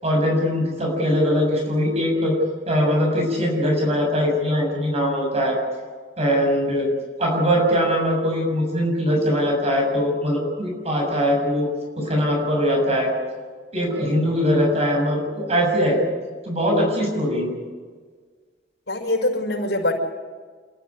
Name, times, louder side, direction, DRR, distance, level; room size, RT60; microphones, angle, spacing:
voice 1, 0.0-2.4 2.7-5.6 6.2-6.9 7.2-11.7 12.0-13.1 13.7-16.0 16.5-17.5, equal, 40° right, 0 dB, 7.1 m, -21 dB
voice 2, 18.9-19.9, left 1 dB, 90° left, 2 dB, 5.6 m, -23 dB
29.0 x 13.5 x 9.9 m, 1.5 s
head